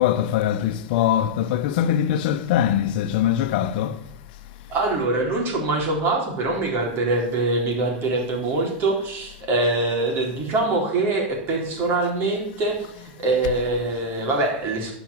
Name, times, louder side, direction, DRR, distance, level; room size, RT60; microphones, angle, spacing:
voice 1, 0.0-4.0, left 11 dB, 65° left, 0.9 m, -22 dB
voice 2, 4.7-14.9, right 2 dB, 40° right, 4.4 m, -24 dB
12.0 x 6.0 x 7.4 m
hypercardioid pair, 110°, 5 cm